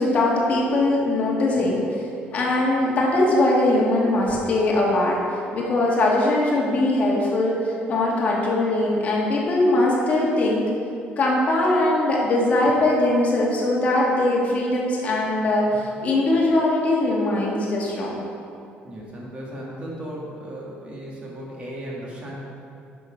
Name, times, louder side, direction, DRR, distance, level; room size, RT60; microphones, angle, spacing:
voice 1, 0.0-2.0 2.3-5.2 5.5-10.7 11.2-18.2, left 2 dB, 40° left, -3 dB, 1.7 m, -21 dB
voice 2, 15.7-16.0 18.8-22.3, right 1 dB, 30° right, -4 dB, 2.0 m, -36 dB
10.5 x 6.3 x 5.2 m, 2.6 s
cardioid pair, 150°, 4 cm